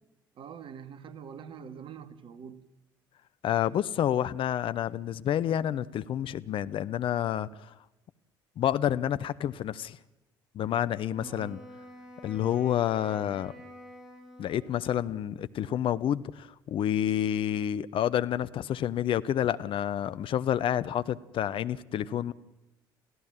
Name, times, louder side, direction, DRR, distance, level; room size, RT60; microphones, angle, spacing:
voice 1, 0.4-2.7 11.2-11.5, right 7 dB, 50° right, 1.9 m, -44 dB
voice 2, 3.4-7.7 8.6-10.0 10.5-11.6 12.2-13.5 14.4-22.3, left 10 dB, 50° left, 0.8 m, -29 dB
Wind instrument woodwind instrument, 11.1-15.3, equal, 5° right, 7.3 m, -49 dB
29.0 x 16.0 x 7.5 m
figure-of-eight pair, 50°, 11 cm